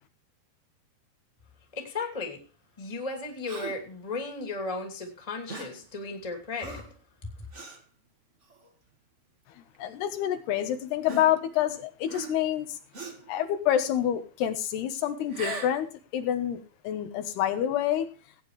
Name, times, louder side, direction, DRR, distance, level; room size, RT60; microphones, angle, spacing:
voice 1, 1.7-2.4 2.8-6.8 7.2-7.3, left 3 dB, 10° left, 2 dB, 2.1 m, -35 dB
Gasp, 3.4-3.9 5.5-5.8 6.6-7.0 7.5-7.8 8.5-8.7 9.7-9.8 11.0-11.7 12.1-12.5 12.9-13.3 15.2-15.8, right 2 dB, 40° right, 1.1 m, -39 dB
voice 2, 9.8-12.8 13.3-15.9 16.1-18.1, left 11 dB, 80° left, 8 dB, 3.3 m, -27 dB
17.0 x 9.6 x 3.2 m, 0.34 s
omnidirectional pair, 4.6 m